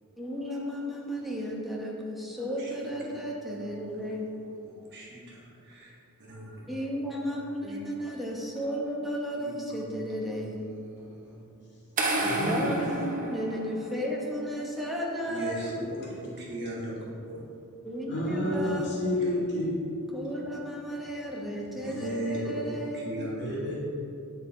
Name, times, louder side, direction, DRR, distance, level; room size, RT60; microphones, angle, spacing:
voice 1, 0.2-4.3 6.7-10.6 12.2-16.0 17.8-19.0 20.1-23.3, equal, ahead, -3 dB, 0.9 m, -34 dB
voice 2, 2.6-2.9 3.8-5.9 6.2-6.8 7.3-7.8 9.3-11.4 12.8-13.1 15.3-16.9 17.3-17.4 18.1-18.2 19.0-19.3 21.8-23.6, right 1 dB, 50° right, -5 dB, 1.5 m, -39 dB
sound 1, 12.0-14.1, right 2 dB, 35° right, 0.7 m, -30 dB
voice 3, 12.2-12.8 18.1-19.8 23.4-23.7, left 1 dB, 50° left, -5 dB, 1.1 m, -30 dB
7.9 x 4.0 x 4.3 m, 2.6 s
head